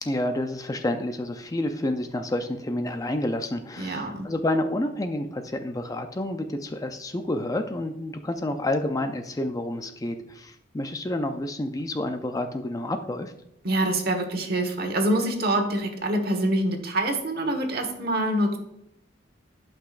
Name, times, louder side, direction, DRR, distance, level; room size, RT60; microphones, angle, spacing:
voice 1, 0.0-13.3, left 1 dB, 20° left, 7 dB, 0.4 m, -29 dB
voice 2, 3.8-4.3 13.6-18.6, right 1 dB, 55° right, 5 dB, 1.3 m, -25 dB
11.5 x 5.8 x 2.5 m, 0.82 s
head